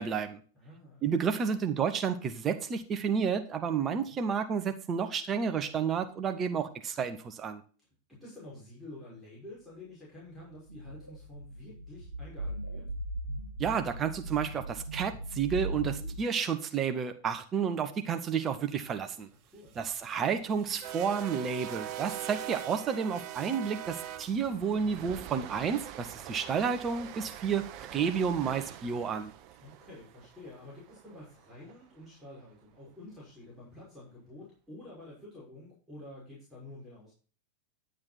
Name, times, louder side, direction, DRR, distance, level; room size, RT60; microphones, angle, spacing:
voice 1, 0.0-0.4 1.0-7.6 13.6-19.3 19.8-29.3, right 6 dB, 25° right, 7 dB, 1.2 m, -31 dB
voice 2, 0.5-1.1 3.9-4.2 8.1-12.9 19.3-19.8 29.6-37.1, left 1 dB, ahead, -7 dB, 5.7 m, -49 dB
sound 1, 10.4-16.1, right 1 dB, 85° right, 2.0 m, -39 dB
sound 2, 19.6-31.7, right 11 dB, 40° right, 0.8 m, -43 dB
11.0 x 7.7 x 4.2 m, 0.40 s
figure-of-eight pair, 90°, 0 cm